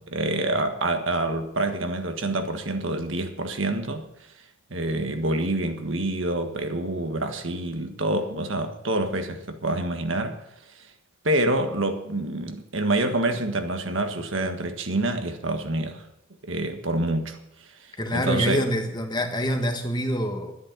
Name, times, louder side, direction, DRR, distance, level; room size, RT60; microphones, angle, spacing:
voice 1, 0.0-4.1 4.7-10.4 11.2-16.0 16.4-17.4 18.1-18.6, right 2 dB, 70° right, 1.6 m, -27 dB
voice 2, 18.0-20.6, equal, 20° left, 1.7 m, -26 dB
11.5 x 9.8 x 8.2 m
head